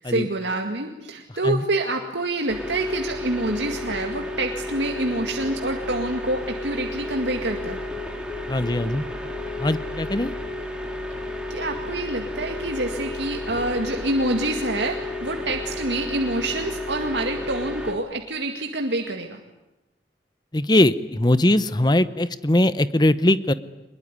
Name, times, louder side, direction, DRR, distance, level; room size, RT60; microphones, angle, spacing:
voice 1, 0.0-7.8 11.2-19.4, right 2 dB, 85° right, 3 dB, 2.1 m, -27 dB
sound 1, 2.5-17.9, left 2 dB, 5° right, 3.1 m, -32 dB
voice 2, 8.5-9.1 9.6-10.3 20.5-23.5, left 1 dB, 25° left, 14 dB, 0.9 m, -20 dB
23.5 x 21.5 x 9.8 m, 0.97 s
head